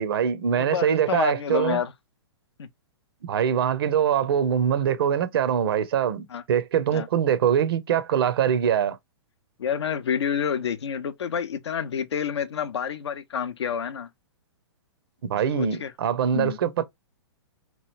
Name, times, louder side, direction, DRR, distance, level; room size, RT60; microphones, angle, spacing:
voice 1, 0.0-1.8 3.3-9.0 15.3-16.8, right 8 dB, 55° right, 0.5 m, -23 dB
voice 2, 0.6-1.9 2.6-2.7 6.3-6.4 6.9-7.1 9.6-14.1 15.5-15.9 16.3-16.6, left 7 dB, 70° left, 0.5 m, -28 dB
2.9 x 2.4 x 3.1 m
figure-of-eight pair, 115°, 15 cm